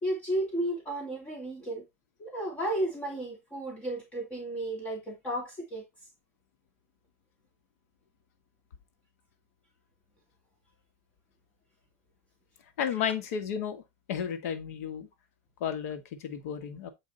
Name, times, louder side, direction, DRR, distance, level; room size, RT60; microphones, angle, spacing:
voice 1, 0.0-1.8 2.2-5.8, right 1 dB, 15° left, 2.5 m, -33 dB
voice 2, 12.8-13.8 14.1-15.1 15.6-16.9, left 8 dB, 75° left, 1.6 m, -33 dB
8.9 x 5.1 x 3.9 m
supercardioid pair, 170°, 8 cm